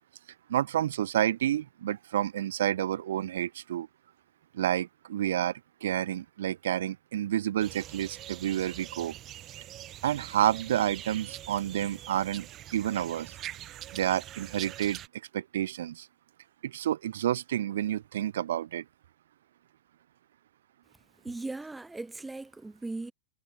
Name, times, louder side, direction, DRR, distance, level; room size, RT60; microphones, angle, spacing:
voice 1, 0.5-3.9 4.5-9.2 10.0-13.4 13.9-15.0 15.3-16.1 16.6-18.8, right 11 dB, 60° right, 0.6 m, -29 dB
sound 1, 7.6-15.1, right 13 dB, 30° right, 1.6 m, -44 dB
voice 2, 21.2-23.1, right 2 dB, 10° right, 0.5 m, -38 dB
figure-of-eight pair, 90°, 0 cm